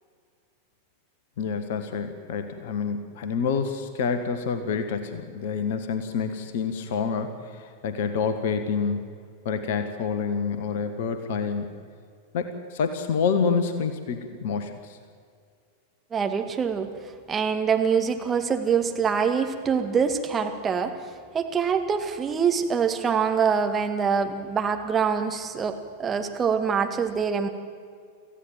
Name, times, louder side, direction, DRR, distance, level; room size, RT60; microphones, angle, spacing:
voice 1, 1.4-9.0 9.4-11.7 12.3-15.0, left 5 dB, 55° left, 9 dB, 1.6 m, -28 dB
voice 2, 16.1-16.9 17.3-20.9 21.3-27.5, right 6 dB, 20° right, 5 dB, 2.0 m, -25 dB
25.5 x 15.5 x 7.6 m, 2.1 s
figure-of-eight pair, 90°, 0 cm